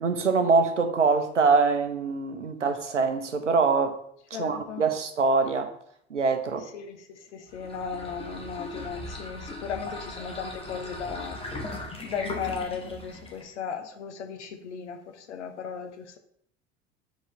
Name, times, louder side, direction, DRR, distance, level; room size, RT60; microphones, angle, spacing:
voice 1, 0.0-4.0 4.4-5.7 6.1-6.7, right 4 dB, 85° right, 0.8 m, -24 dB
voice 2, 4.3-4.8 6.7-11.4 12.0-16.2, left 6 dB, 70° left, 0.9 m, -36 dB
sound 1, 7.5-13.5, left 2 dB, 15° left, 1.3 m, -38 dB
4.9 x 3.9 x 4.9 m
figure-of-eight pair, 75°, 36 cm